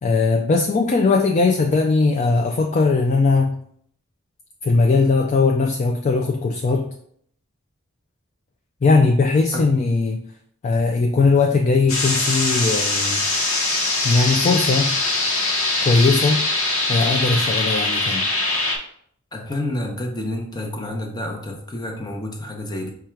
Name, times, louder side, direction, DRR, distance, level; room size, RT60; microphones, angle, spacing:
voice 1, 0.0-3.6 4.6-6.9 8.8-10.2 10.6-13.3 14.0-15.0 15.8-16.4 16.9-18.3, left 3 dB, 35° left, 0.3 m, -19 dB
sound 1, 11.9-18.8, left 2 dB, 90° left, 1.0 m, -22 dB
voice 2, 19.3-22.9, left 1 dB, 20° left, 0.7 m, -29 dB
4.7 x 2.3 x 4.4 m
head